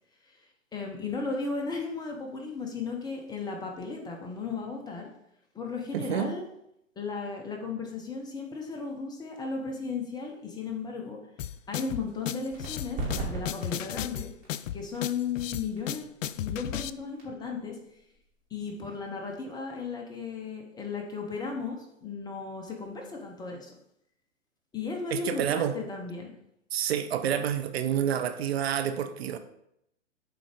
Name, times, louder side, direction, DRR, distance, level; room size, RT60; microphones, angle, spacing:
voice 1, 0.2-5.1 5.5-6.4 7.0-11.2 11.7-14.3 14.7-16.1 16.4-17.8 18.5-23.7 24.7-26.3, left 4 dB, 10° left, 1 dB, 0.7 m, -35 dB
voice 2, 5.9-6.3 25.1-25.8 26.7-29.4, right 9 dB, 50° right, 9 dB, 0.7 m, -28 dB
sound 1, 11.4-16.9, left 11 dB, 70° left, 0.5 m, -35 dB
sound 2, 12.5-19.8, right 2 dB, 25° right, 2.7 m, -41 dB
7.8 x 3.9 x 5.0 m, 0.78 s
hypercardioid pair, 125°, 40 cm